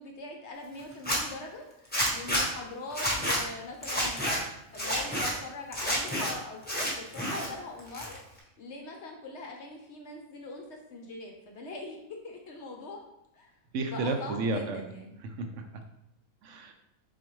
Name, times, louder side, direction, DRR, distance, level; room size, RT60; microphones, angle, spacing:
voice 1, 0.0-13.0 13.3-13.5 13.9-15.1, left 3 dB, 60° left, 2 dB, 0.8 m, -43 dB
Zipper (clothing), 0.9-1.2 1.9-2.4 2.9-3.4 3.8-4.4 4.7-5.3 5.7-6.3 6.6-7.5 7.8-8.4, equal, 10° left, 0.8 m, -29 dB
voice 2, 13.7-14.9 15.2-15.8 16.4-16.7, right 3 dB, 70° right, 5 dB, 0.9 m, -32 dB
4.1 x 3.9 x 3.1 m, 0.82 s
omnidirectional pair, 1.5 m